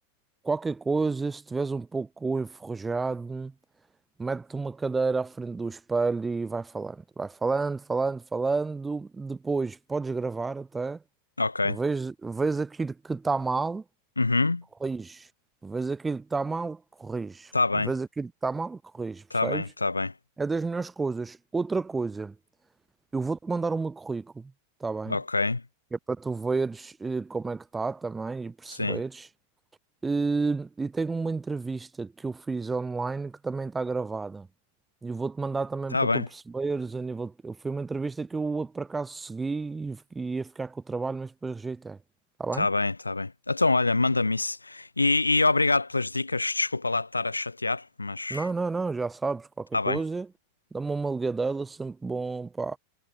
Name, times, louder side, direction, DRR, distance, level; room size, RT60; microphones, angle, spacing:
voice 1, 0.4-3.5 4.2-11.0 11.7-13.8 14.8-15.3 15.6-17.5 17.8-19.6 20.4-22.3 23.1-24.5 24.8-25.2 25.9-29.3 30.0-34.5 35.0-36.2 36.5-42.0 42.4-42.7 48.3-50.3 50.7-52.8, right 4 dB, 10° right, 0.4 m, -30 dB
voice 2, 11.4-11.8 14.2-14.6 17.5-17.9 19.3-20.1 25.1-25.6 28.7-29.0 35.9-36.3 42.6-48.5 49.7-50.0, left 3 dB, 80° left, 0.4 m, -26 dB
figure-of-eight pair, 90°, 0 cm